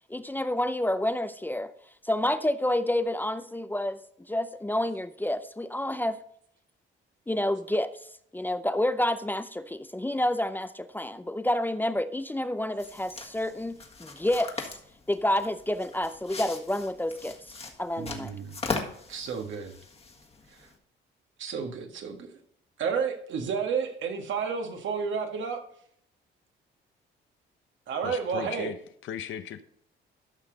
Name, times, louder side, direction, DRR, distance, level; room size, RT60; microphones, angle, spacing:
voice 1, 0.1-1.7 2.0-4.0 4.3-6.2 7.3-7.9 8.3-14.7 15.1-17.4 17.8-18.4, left 1 dB, 10° left, 12 dB, 0.5 m, -29 dB
sound 1, 12.8-20.7, left 3 dB, 30° left, 1.7 m, -40 dB
voice 2, 18.0-18.5 19.1-19.8 20.6-20.7 21.4-22.3 22.8-25.6 27.9-28.7, right 6 dB, 70° right, 4 dB, 1.8 m, -31 dB
voice 3, 28.0-28.8 29.0-29.6, left 9 dB, 75° left, 11 dB, 0.8 m, -36 dB
13.0 x 5.8 x 4.0 m, 0.66 s
cardioid pair, 90°, 20 cm